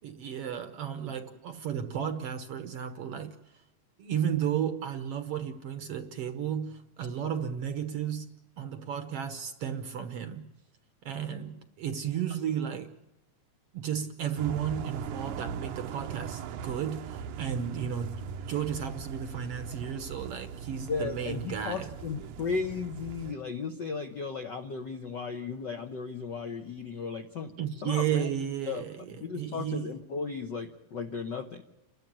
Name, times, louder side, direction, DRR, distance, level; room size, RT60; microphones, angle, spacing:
voice 1, 0.0-3.4 4.0-8.3 8.6-10.5 11.0-13.0 13.7-21.9 27.6-30.0, right 9 dB, 65° right, 1.7 m, -33 dB
sound 1, 14.4-23.3, right 7 dB, 80° right, 2.3 m, -40 dB
voice 2, 20.9-27.5 27.8-28.3 28.7-28.8 29.2-31.6, left 5 dB, 65° left, 1.0 m, -35 dB
29.5 x 12.0 x 8.9 m
omnidirectional pair, 3.6 m